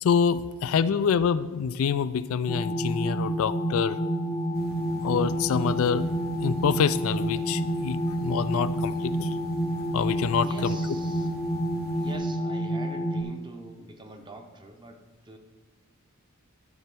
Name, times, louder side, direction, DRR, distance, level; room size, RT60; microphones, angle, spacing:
voice 1, 0.0-4.0 5.0-6.1 6.4-9.3 9.9-10.8, left 7 dB, 65° left, 14 dB, 0.3 m, -26 dB
sound 1, 2.5-13.2, equal, 15° left, 0.6 m, -29 dB
sound 2, 4.5-12.1, right 1 dB, 45° right, 1.0 m, -45 dB
voice 2, 10.4-11.3 12.0-15.4, right 2 dB, 20° right, 5 dB, 0.9 m, -44 dB
12.0 x 4.4 x 6.0 m, 1.4 s
head